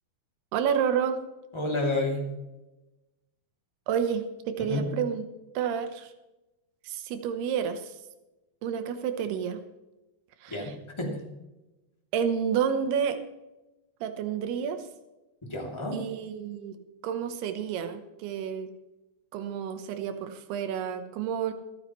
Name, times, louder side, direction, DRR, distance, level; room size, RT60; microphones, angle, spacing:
voice 1, 0.5-1.2 3.9-5.2 5.5-6.1 6.8-8.0 8.6-9.6 10.4-10.7 12.1-13.2 14.0-14.9 15.9-18.7 19.3-21.5, right 7 dB, 85° right, 8 dB, 3.1 m, -30 dB
voice 2, 1.5-2.2 4.7-4.8 10.5-11.2 15.4-16.0, left 2 dB, 10° left, -1 dB, 2.1 m, -30 dB
26.5 x 9.5 x 3.2 m, 1.0 s
omnidirectional pair, 4.5 m